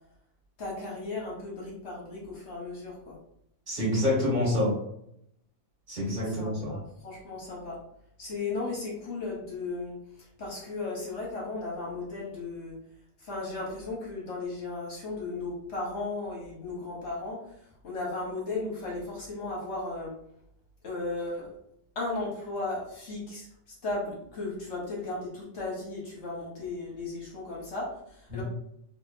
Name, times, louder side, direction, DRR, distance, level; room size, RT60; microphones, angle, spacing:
voice 1, 0.6-3.2 6.2-7.8 8.2-12.8 13.2-17.4 17.8-20.1 20.8-21.5 22.0-23.5 23.8-28.4, left 3 dB, 55° left, -3 dB, 0.8 m, -35 dB
voice 2, 3.7-4.7 5.9-6.7 28.3-28.4, left 1 dB, 35° right, -6 dB, 1.1 m, -27 dB
2.7 x 2.6 x 2.4 m, 0.74 s
omnidirectional pair, 1.7 m